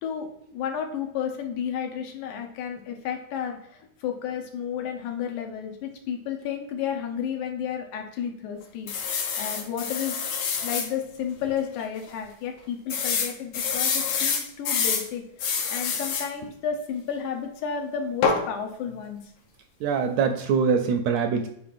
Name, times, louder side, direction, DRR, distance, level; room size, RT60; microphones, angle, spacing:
voice 1, 0.0-8.9 9.4-10.2 10.6-15.2 15.7-19.3, left 8 dB, 85° left, 3 dB, 2.4 m, -32 dB
sound 1, 8.9-10.9 11.4-11.5 11.8-11.9 12.9-15.1 15.4-16.3 18.2-18.5, left 6 dB, 70° left, 1.9 m, -26 dB
voice 2, 19.8-21.5, right 6 dB, 80° right, 6 dB, 1.6 m, -23 dB
8.7 x 4.2 x 2.5 m, 0.74 s
omnidirectional pair, 3.4 m